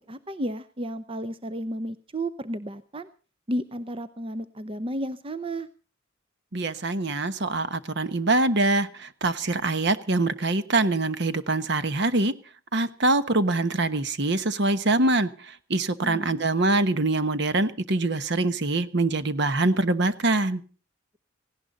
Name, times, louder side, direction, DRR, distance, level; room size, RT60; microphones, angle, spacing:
voice 1, 0.1-3.1 3.5-5.7 16.0-16.4, right 1 dB, 25° right, 12 dB, 0.7 m, -32 dB
voice 2, 6.5-12.3 12.7-20.6, right 2 dB, 60° right, 12 dB, 1.2 m, -24 dB
18.0 x 16.5 x 4.0 m, 0.37 s
head